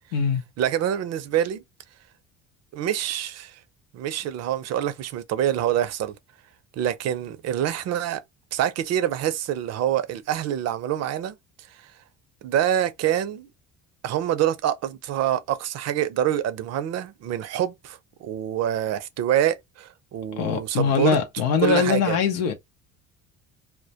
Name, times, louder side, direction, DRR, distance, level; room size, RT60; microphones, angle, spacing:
voice 1, 0.6-1.6 2.7-3.6 3.9-6.1 6.7-8.2 8.5-11.3 12.4-13.5 14.0-21.2 21.6-22.2, right 11 dB, 50° right, 0.5 m, -26 dB
voice 2, 20.4-22.5, left 6 dB, 90° left, 0.6 m, -22 dB
2.1 x 2.1 x 2.7 m
supercardioid pair, 90°, 33 cm